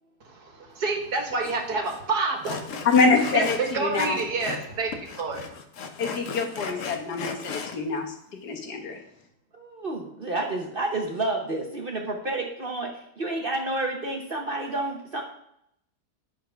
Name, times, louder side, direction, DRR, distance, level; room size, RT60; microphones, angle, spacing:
voice 1, 0.2-2.9 3.1-5.5, right 3 dB, 65° right, 3 dB, 1.9 m, -29 dB
Sawing, 1.4-1.5 1.8-2.0 2.4-4.7 4.9-7.8, left 5 dB, 55° left, 1.1 m, -36 dB
voice 2, 2.9-4.2 6.0-8.1 8.4-9.0, left 4 dB, 70° left, 2 dB, 1.8 m, -25 dB
voice 3, 9.5-15.2, right 2 dB, 40° right, 1 dB, 1.0 m, -30 dB
10.0 x 4.6 x 5.6 m, 0.74 s
omnidirectional pair, 1.8 m